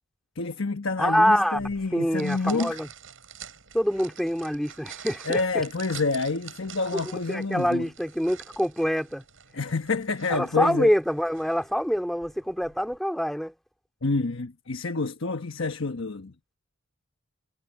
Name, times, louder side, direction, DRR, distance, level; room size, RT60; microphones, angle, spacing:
voice 1, 0.4-2.8 5.2-7.9 9.5-10.9 14.0-16.3, left 3 dB, 70° left, 1.1 m, -28 dB
voice 2, 1.0-2.9 3.7-5.4 6.9-9.2 10.3-13.5, equal, ahead, 2.6 m, -25 dB
sound 1, 1.6-13.0, right 8 dB, 70° right, 6.9 m, -46 dB
head